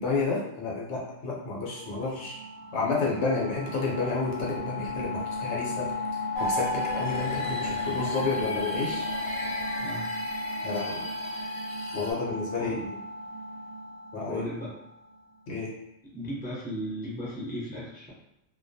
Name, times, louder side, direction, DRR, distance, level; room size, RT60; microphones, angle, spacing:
voice 1, 0.0-2.4 2.7-5.9 6.4-9.3 10.6-11.0 11.9-12.8 14.1-14.4 15.5-15.7, left 3 dB, 70° left, -3 dB, 0.9 m, -30 dB
sound 1, 1.7-15.1, left 2 dB, 70° right, 0.8 m, -34 dB
sound 2, 6.3-12.1, equal, 35° left, 0.6 m, -36 dB
voice 2, 14.3-14.7 16.1-18.1, equal, 10° right, -8 dB, 0.5 m, -35 dB
2.2 x 2.2 x 2.6 m, 0.82 s
omnidirectional pair, 1.3 m